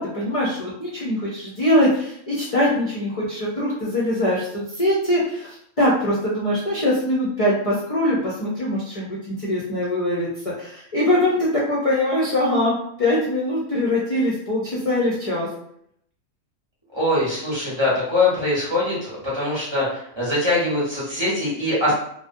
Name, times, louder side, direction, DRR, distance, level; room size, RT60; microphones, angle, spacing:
voice 1, 0.0-15.5, left 1 dB, 50° left, -6 dB, 0.4 m, -22 dB
voice 2, 16.9-21.9, left 2 dB, 25° right, -8 dB, 0.8 m, -22 dB
2.5 x 2.1 x 2.5 m, 0.71 s
omnidirectional pair, 1.3 m